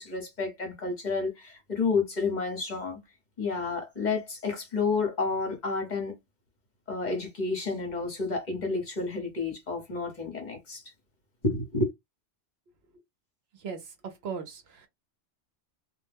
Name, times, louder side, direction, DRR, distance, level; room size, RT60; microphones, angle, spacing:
voice 1, 0.0-3.0 3.4-6.1 6.9-10.8 11.4-11.9, left 4 dB, 45° left, 1.0 m, -30 dB
voice 2, 13.6-14.9, right 5 dB, 70° right, 0.9 m, -38 dB
2.4 x 2.1 x 3.3 m
omnidirectional pair, 1.1 m